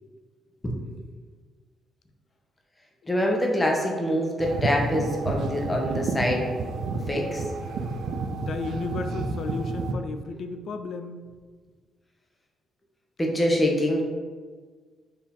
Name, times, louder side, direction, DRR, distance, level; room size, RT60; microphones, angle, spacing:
voice 1, 3.1-6.5 7.1-7.4 13.2-14.0, equal, 15° left, 0 dB, 0.9 m, -25 dB
sound 1, 4.4-9.9, right 3 dB, 70° right, 0.4 m, -30 dB
voice 2, 8.4-11.2, left 4 dB, 60° left, 8 dB, 0.3 m, -33 dB
4.5 x 2.7 x 3.6 m, 1.5 s
cardioid pair, 90°, 0 cm